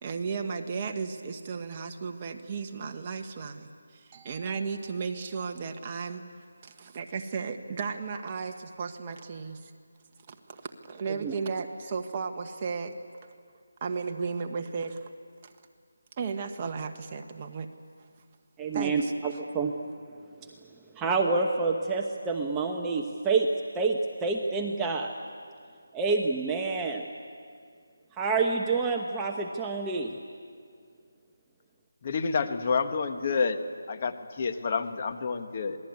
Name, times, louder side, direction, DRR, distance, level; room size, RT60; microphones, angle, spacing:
voice 1, 0.0-6.2 6.6-9.7 10.3-13.0 13.2-13.3 13.8-15.1 15.4-15.5 16.2-17.7 18.7-19.1, right 5 dB, 25° right, 5 dB, 1.4 m, -35 dB
voice 2, 18.6-19.7 20.9-25.1 25.9-27.0 28.2-30.2, right 4 dB, 10° right, 1 dB, 1.0 m, -28 dB
voice 3, 32.0-33.6 33.9-35.8, left 5 dB, 35° left, 7 dB, 1.4 m, -29 dB
26.5 x 20.0 x 9.5 m, 2.2 s
figure-of-eight pair, 165°, 0 cm